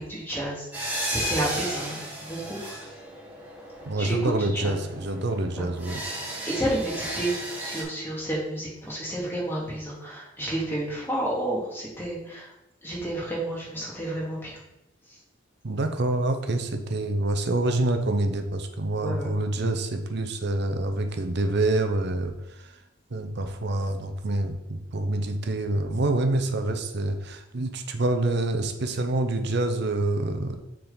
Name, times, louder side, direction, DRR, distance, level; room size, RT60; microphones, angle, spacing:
voice 1, 0.0-2.8 4.0-4.8 5.6-5.7 6.5-7.3 7.6-12.5 12.8-14.6 15.1-15.2 19.0-19.3, right 1 dB, 10° left, -5 dB, 2.0 m, -31 dB
sound 1, 0.7-7.8, right 1 dB, 10° right, 1.4 m, -34 dB
voice 2, 3.9-6.0 15.6-22.7 23.1-30.6, right 2 dB, 60° right, 6 dB, 0.7 m, -27 dB
6.8 x 3.8 x 4.0 m, 0.88 s
head